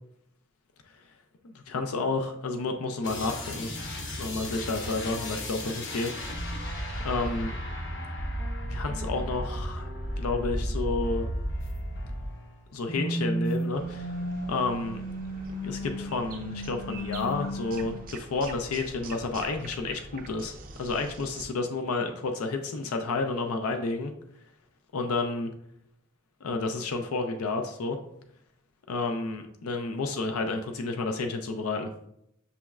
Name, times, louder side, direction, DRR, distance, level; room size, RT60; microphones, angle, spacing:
voice 1, 1.4-3.7 4.2-6.7 7.0-7.5 8.7-9.9 10.2-11.3 12.7-14.1 14.5-15.0 15.6-24.1 24.9-25.5 26.4-28.0 28.9-31.9, left 3 dB, 80° left, 5 dB, 0.5 m, -31 dB
sound 1, 3.0-12.6 12.8-17.9, equal, 55° left, 0.8 m, -34 dB
sound 2, 13.7-21.5, right 3 dB, 40° right, 0.4 m, -45 dB
6.8 x 3.1 x 2.3 m, 0.76 s
head